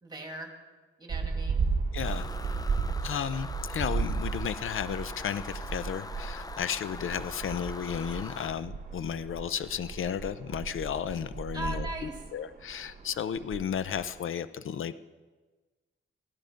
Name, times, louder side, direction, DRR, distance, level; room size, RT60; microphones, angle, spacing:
voice 1, 0.0-0.5 1.0-1.6 11.5-12.2, right 1 dB, 20° right, 2 dB, 2.4 m, -39 dB
sound 1, 1.1-14.3, right 4 dB, 40° right, 1.1 m, -35 dB
voice 2, 1.9-2.6 3.0-11.9 12.3-15.0, left 8 dB, 75° left, 14 dB, 0.6 m, -33 dB
sound 2, 2.0-8.5, left 3 dB, 20° left, 0.5 m, -43 dB
16.5 x 13.0 x 5.2 m, 1.3 s
wide cardioid pair, 125°, 21 cm